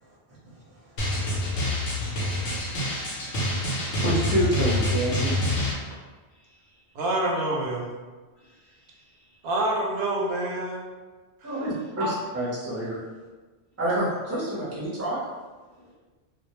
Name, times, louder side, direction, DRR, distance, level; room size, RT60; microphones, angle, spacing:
Drum, 1.0-5.7, left 1 dB, 85° left, 0.9 m, -27 dB
voice 1, 4.0-5.5 11.4-13.0 13.8-15.2, right 1 dB, 15° right, -8 dB, 0.6 m, -27 dB
voice 2, 6.3-7.0 8.3-9.4 11.4-11.7 15.8-15.9, equal, 55° left, -5 dB, 0.7 m, -61 dB
voice 3, 6.9-7.9 9.4-10.9 11.4-11.7 12.0-12.2, right 1 dB, 70° right, -2 dB, 0.8 m, -27 dB
2.3 x 2.0 x 2.9 m, 1.3 s
omnidirectional pair, 1.1 m